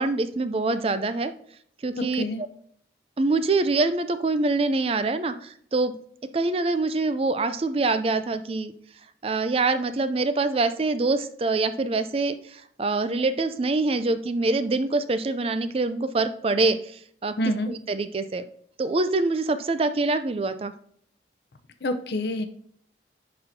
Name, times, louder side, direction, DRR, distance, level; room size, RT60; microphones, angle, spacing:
voice 1, 0.0-1.3 1.8-2.5 3.2-6.0 6.3-8.7 9.2-18.4 18.8-20.7, right 3 dB, 30° right, 11 dB, 0.4 m, -25 dB
voice 2, 2.0-2.4 17.4-17.7 21.8-22.5, left 1 dB, 65° left, 9 dB, 0.7 m, -27 dB
11.0 x 4.3 x 2.7 m, 0.62 s
head